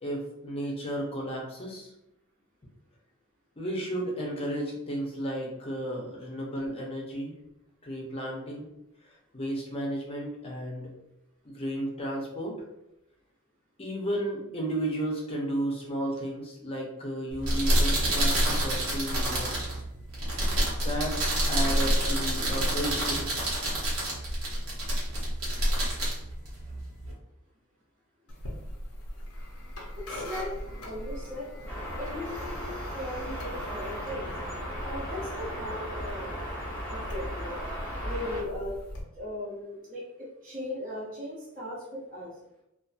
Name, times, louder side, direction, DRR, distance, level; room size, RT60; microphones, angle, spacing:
voice 1, 0.0-1.9 3.6-7.4 7.8-8.7 9.3-10.9 11.4-12.6 13.8-19.7 20.8-21.2 21.5-23.7, right 1 dB, 25° left, -1 dB, 0.6 m, -33 dB
sound 1, 17.3-27.1, right 1 dB, 90° right, 1.0 m, -27 dB
sound 2, 28.3-39.0, equal, 75° left, 0.6 m, -41 dB
voice 2, 30.0-31.5 32.0-34.3 34.8-36.3 36.9-37.6 38.0-38.7 39.2-40.0 40.4-42.3, left 1 dB, 40° right, -9 dB, 0.8 m, -38 dB
sound 3, 31.7-38.4, equal, 10° left, 0.9 m, -36 dB
2.6 x 2.4 x 2.4 m, 0.85 s
head